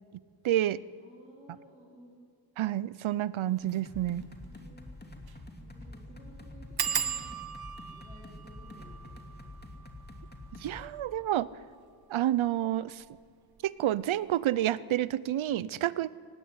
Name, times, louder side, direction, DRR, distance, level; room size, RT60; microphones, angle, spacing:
voice 1, 0.4-0.8 2.6-4.2 10.6-11.5 12.1-13.0 13.6-16.1, right 13 dB, 80° right, 19 dB, 0.7 m, -29 dB
voice 2, 1.0-2.1 4.4-4.9 5.6-9.8, right 1 dB, 15° right, -5 dB, 4.7 m, -56 dB
sound 1, 3.6-10.9, left 2 dB, 20° left, 2.7 m, -47 dB
sound 2, 3.6-3.8 4.2-4.3 4.5-4.6 5.2-5.5 5.7-5.8 6.8-12.0 12.7-13.2 13.6-13.9 14.2-14.3, right 7 dB, 50° right, 0.9 m, -38 dB
18.0 x 17.0 x 9.8 m, 2.1 s
cardioid pair, 90°, 47 cm